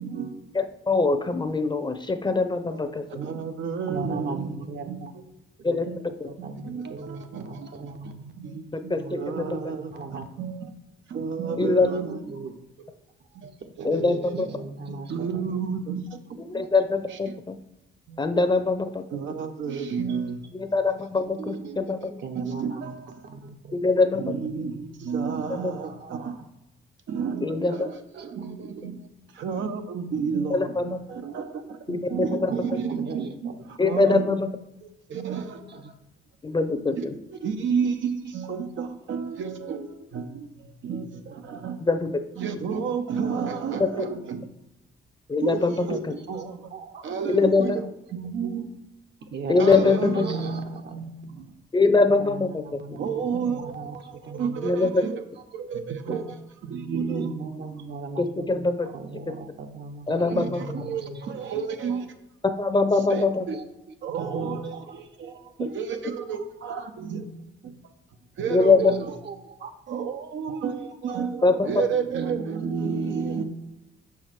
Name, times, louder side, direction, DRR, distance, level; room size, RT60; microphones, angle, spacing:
voice 1, 0.0-0.4 2.7-2.8 3.1-5.3 5.9-6.0 6.4-10.7 11.1-12.2 13.3-13.5 13.8-14.5 14.9-16.6 17.1-17.4 18.1-18.2 19.1-20.5 21.2-22.1 22.3-23.2 24.2-26.5 27.1-29.1 29.3-34.5 34.8-35.6 37.0-41.8 42.4-44.5 45.4-46.0 46.3-46.7 47.0-48.7 49.6-51.1 53.0-55.2 55.5-57.3 58.8-58.9 60.1-62.1 63.1-63.6 64.0-67.2 67.8-67.9 68.4-69.1 69.9-73.4, right 6 dB, 75° right, 6 dB, 0.9 m, -31 dB
voice 2, 0.5-3.0 5.6-5.9 6.2-6.3 8.9-9.6 11.6-11.9 13.8-14.5 16.4-17.5 18.2-19.0 20.5-22.1 23.8-24.3 25.6-25.7 27.4-27.9 30.5-31.0 31.9-32.0 32.3-32.5 33.8-34.5 36.4-37.1 41.8-42.1 45.3-46.1 47.3-47.8 49.5-50.3 51.7-52.6 52.9-53.0 54.6-55.0 56.1-56.2 58.2-58.9 60.1-60.6 62.6-63.4 68.5-68.9 71.4-71.5, left 3 dB, 20° left, 9 dB, 0.7 m, -23 dB
voice 3, 3.9-5.1 5.6-5.9 6.2-8.3 9.0-10.3 11.9-12.5 13.8-15.7 22.2-23.8 25.8-26.2 27.7-27.9 28.1-28.4 30.5-30.7 32.5-33.5 35.3-35.4 35.7-35.9 43.3-43.8 46.3-46.4 46.7-47.0 47.6-47.8 49.3-51.5 52.1-54.7 57.2-58.7 58.9-61.3 63.5-63.6 64.7-64.9 68.9-69.7 70.5-70.6 71.1-71.2, right 4 dB, 60° right, 5 dB, 1.1 m, -39 dB
6.1 x 4.8 x 6.0 m, 0.90 s
cardioid pair, 85°, 20 cm